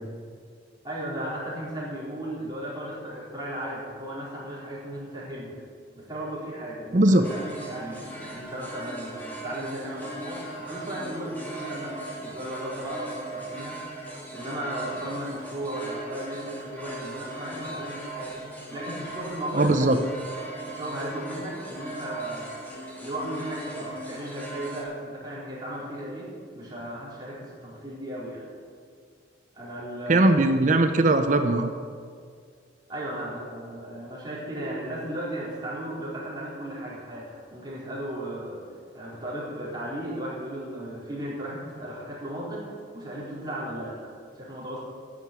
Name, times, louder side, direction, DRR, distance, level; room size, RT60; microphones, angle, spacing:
voice 1, 0.8-5.5 5.9-14.0 14.3-18.3 18.7-19.9 20.6-22.5 23.0-26.3 26.5-28.4 29.5-30.4 32.9-38.6 38.9-42.7 42.9-44.8, right 1 dB, 25° right, -7 dB, 4.3 m, -35 dB
voice 2, 6.9-7.2 19.5-20.0 30.1-31.7, right 2 dB, 45° right, 7 dB, 0.7 m, -20 dB
sound 1, 7.2-24.8, right 1 dB, 10° left, 2.4 m, -38 dB
10.5 x 7.5 x 9.5 m, 2.1 s
head